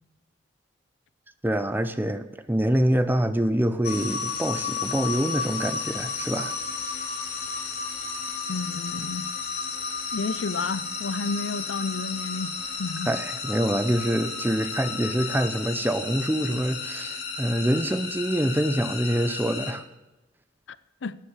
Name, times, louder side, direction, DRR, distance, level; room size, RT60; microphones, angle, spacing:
voice 1, 1.4-6.5 13.1-19.8, right 1 dB, 10° right, 0.6 m, -25 dB
sound 1, 3.8-19.7, left 5 dB, 55° left, 2.4 m, -33 dB
voice 2, 8.5-9.3 10.1-13.1 21.0-21.2, left 4 dB, 75° left, 0.6 m, -31 dB
13.0 x 9.8 x 7.3 m
head